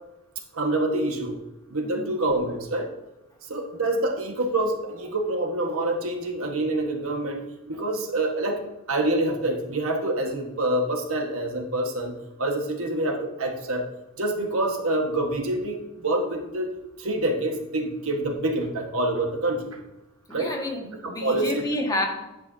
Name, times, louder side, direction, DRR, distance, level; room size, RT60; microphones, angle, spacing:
voice 1, 0.5-1.4 1.7-2.9 3.5-7.4 7.7-8.6 8.9-12.1 12.4-13.8 14.2-16.7 17.0-19.8 20.3-20.5 21.2-21.6, right 1 dB, 80° right, 3 dB, 1.4 m, -26 dB
voice 2, 20.3-22.1, left 1 dB, 15° left, -1 dB, 1.6 m, -29 dB
10.5 x 8.6 x 2.7 m, 0.97 s
head